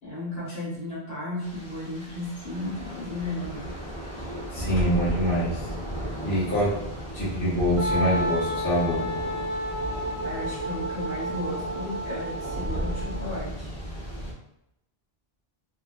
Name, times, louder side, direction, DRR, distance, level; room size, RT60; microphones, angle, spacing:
voice 1, 0.0-4.3 10.2-13.7, left 1 dB, 70° left, -8 dB, 1.5 m, -35 dB
Thunder / Rain, 1.4-14.3, equal, 35° left, 0.5 m, -35 dB
voice 2, 4.5-5.6 6.2-6.8 7.1-9.0, equal, 20° left, -9 dB, 1.0 m, -25 dB
Wind instrument woodwind instrument, 7.8-13.4, equal, 55° right, 0.4 m, -31 dB
2.6 x 2.3 x 2.3 m, 0.84 s
omnidirectional pair, 1.1 m